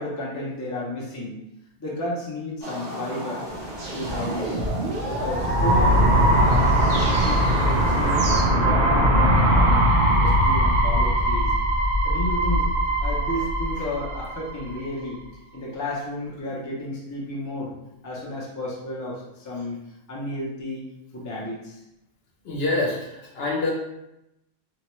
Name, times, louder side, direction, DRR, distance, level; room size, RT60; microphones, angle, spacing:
voice 1, 0.0-1.3 1.8-3.5 3.9-4.7 5.2-6.1 6.3-8.2 8.5-11.5 12.0-12.7 13.0-15.2 15.5-17.7 18.0-19.8 20.1-20.8 21.1-21.8, left 1 dB, 25° left, -4 dB, 0.4 m, -32 dB
sound 1, 2.6-8.4, right 1 dB, 85° right, 1.1 m, -35 dB
sound 2, 3.8-14.7, right 1 dB, 50° right, 0.8 m, -20 dB
voice 2, 22.4-23.7, left 2 dB, 65° left, -3 dB, 0.9 m, -26 dB
2.9 x 2.1 x 3.0 m, 0.88 s
omnidirectional pair, 1.2 m